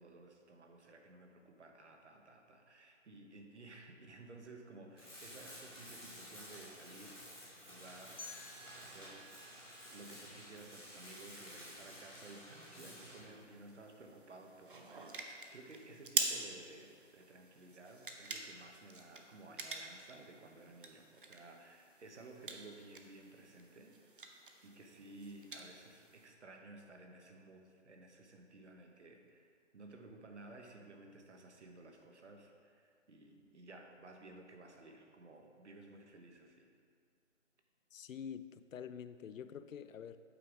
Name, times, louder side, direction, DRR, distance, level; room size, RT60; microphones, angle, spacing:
voice 1, 0.0-7.4 7.7-9.3 9.9-24.0 24.6-36.7, right 2 dB, 60° right, 3 dB, 1.1 m, -55 dB
Tools, 5.0-13.3, equal, ahead, 1.7 m, -53 dB
sound 1, 7.8-26.3, right 3 dB, 45° right, 0.6 m, -47 dB
sound 2, 8.2-11.1, left 2 dB, 65° left, 1.8 m, -55 dB
voice 2, 37.9-40.2, left 8 dB, 90° left, 12 dB, 0.5 m, -47 dB
8.3 x 3.8 x 4.8 m, 2.2 s
hypercardioid pair, 170°, 38 cm